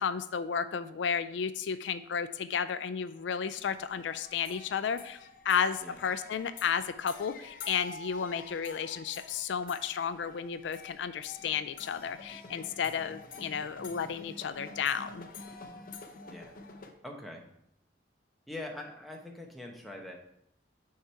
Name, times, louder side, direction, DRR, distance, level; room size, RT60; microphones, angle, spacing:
voice 1, 0.0-5.2 5.4-15.3, left 7 dB, 80° left, 12 dB, 0.4 m, -33 dB
sound 1, 3.5-16.9, left 3 dB, 50° left, 0.7 m, -48 dB
voice 2, 13.3-13.7 16.3-16.5 17.0-17.5 18.5-20.2, left 1 dB, ahead, 0 dB, 0.9 m, -43 dB
6.5 x 4.7 x 4.4 m, 0.73 s
head